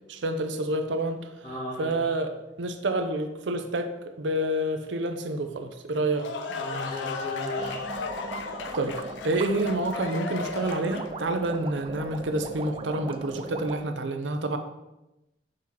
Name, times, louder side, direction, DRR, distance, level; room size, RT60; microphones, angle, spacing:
voice 1, 0.1-1.3 1.8-3.9 4.2-6.3 8.7-9.0 9.2-14.6, right 2 dB, 85° right, 7 dB, 0.6 m, -28 dB
voice 2, 1.4-2.1 6.5-7.8, left 1 dB, 40° left, -5 dB, 2.1 m, -36 dB
sound 1, 5.9-11.3, left 4 dB, 80° left, 0.5 m, -35 dB
sound 2, 7.6-13.8, right 3 dB, 30° right, 0.3 m, -39 dB
6.4 x 5.9 x 2.9 m, 0.96 s
head